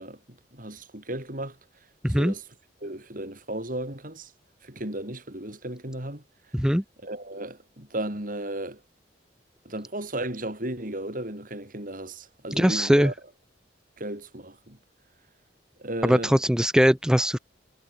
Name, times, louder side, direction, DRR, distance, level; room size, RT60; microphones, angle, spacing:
voice 1, 0.0-1.6 2.2-2.4 2.8-4.3 4.6-6.2 7.0-8.8 9.6-13.1 14.0-14.8 15.8-16.3, right 1 dB, 50° right, 6.1 m, -35 dB
voice 2, 2.0-2.3 6.5-6.8 12.5-13.1 16.0-17.4, equal, 5° right, 1.2 m, -21 dB
head